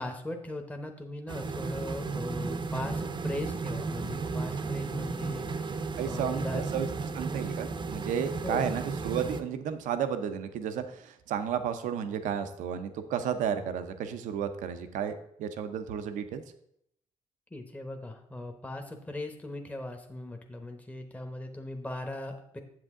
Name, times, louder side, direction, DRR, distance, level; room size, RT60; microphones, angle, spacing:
voice 1, 0.0-5.8 6.0-6.6 8.4-8.7 17.5-22.6, left 1 dB, 10° left, 4 dB, 1.0 m, -39 dB
sound 1, 1.3-9.4, right 4 dB, 35° right, 0.7 m, -34 dB
voice 2, 6.0-6.9 7.1-15.1 15.4-16.4, right 8 dB, 80° right, 9 dB, 0.7 m, -32 dB
7.8 x 7.5 x 3.7 m, 0.74 s
cardioid pair, 80°, 13 cm